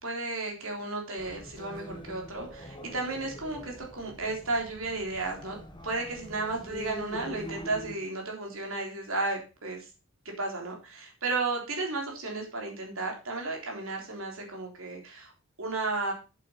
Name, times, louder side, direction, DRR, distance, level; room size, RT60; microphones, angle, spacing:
voice 1, 0.0-5.6 5.8-9.9 10.3-15.3 15.6-16.1, right 3 dB, 70° right, 1 dB, 3.6 m, -33 dB
sound 1, 1.2-8.0, equal, 20° left, 1.4 m, -44 dB
8.3 x 7.6 x 5.6 m, 0.31 s
head